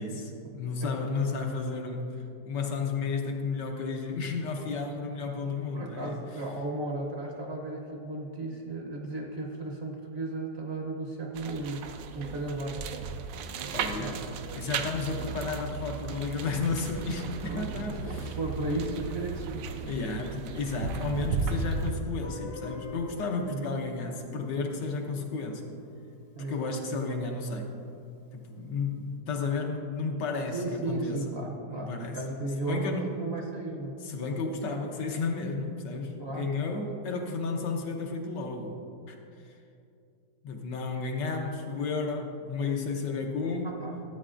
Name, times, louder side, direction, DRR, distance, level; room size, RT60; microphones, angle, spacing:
voice 1, 0.0-6.2 13.7-14.2 14.5-18.3 18.7-18.8 19.8-25.7 26.5-27.7 28.3-31.3 31.6-32.2 32.6-33.1 34.0-38.8 39.1-39.2 39.4-39.6 40.4-43.8, left 4 dB, 85° left, 2 dB, 1.6 m, -32 dB
voice 2, 5.7-12.9 14.0-14.2 17.4-17.7 18.0-19.7 23.5-23.7 26.4-26.8 30.5-34.0 36.2-36.8 43.6-44.0, right 2 dB, 50° right, 0 dB, 0.9 m, -35 dB
sound 1, 11.4-21.9, right 4 dB, 85° right, 1.2 m, -35 dB
Guitar, 22.2-27.1, left 3 dB, 65° left, 1.4 m, -46 dB
13.5 x 8.3 x 2.5 m, 2.6 s
omnidirectional pair, 1.9 m